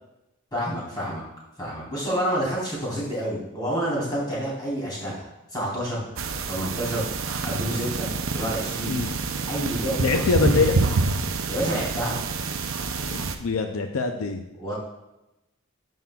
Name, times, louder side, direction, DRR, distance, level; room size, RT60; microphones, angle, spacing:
voice 1, 0.5-1.2 1.6-6.1 6.5-8.9 9.5-10.0 10.5-10.6 11.4-12.2 14.6-14.7, equal, 20° left, -6 dB, 3.0 m, -29 dB
sound 1, 6.2-13.3, right 4 dB, 65° right, 0.6 m, -27 dB
voice 2, 10.0-10.8 13.1-14.4, left 4 dB, 75° left, 5 dB, 0.5 m, -24 dB
13.0 x 5.5 x 2.3 m, 0.94 s
head